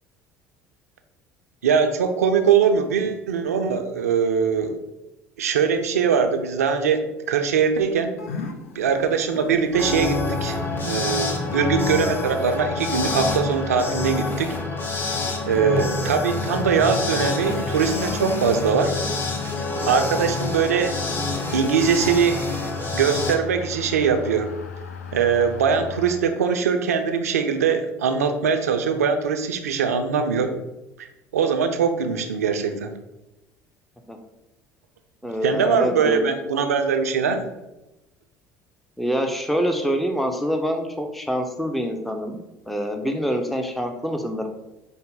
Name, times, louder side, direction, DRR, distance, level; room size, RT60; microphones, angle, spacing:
voice 1, 1.6-4.8 5.4-8.1 8.8-14.5 15.5-18.9 19.9-20.9 21.5-22.5 22.9-24.5 25.1-30.5 31.0-31.1 31.3-32.9 35.4-37.4, right 6 dB, 90° right, 7 dB, 0.4 m, -22 dB
sound 1, 8.2-26.1, left 6 dB, 90° left, 0.4 m, -37 dB
sound 2, 9.7-23.4, left 3 dB, 25° left, 1.0 m, -27 dB
voice 2, 35.2-36.3 39.0-44.5, equal, ahead, 5 dB, 0.6 m, -26 dB
5.3 x 2.0 x 3.8 m, 0.98 s
hypercardioid pair, 65°, 8 cm